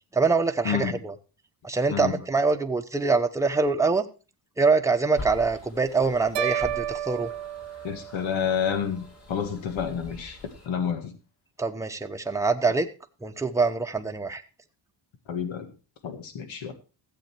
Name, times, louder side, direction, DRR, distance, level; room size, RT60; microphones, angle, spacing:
voice 1, 0.1-1.1 1.6-4.0 4.6-7.3 11.6-12.9 13.2-14.4, right 4 dB, 5° right, 0.9 m, -24 dB
voice 2, 0.7-1.0 1.9-2.1 7.8-9.0 9.3-10.4 10.6-11.1 15.3-15.7 16.0-16.7, left 7 dB, 85° left, 1.9 m, -29 dB
sound 1, 5.1-10.7, left 2 dB, 35° left, 2.8 m, -44 dB
sound 2, 6.3-8.6, right 12 dB, 65° right, 0.7 m, -31 dB
15.0 x 7.8 x 4.5 m
cardioid pair, 130°, 45 cm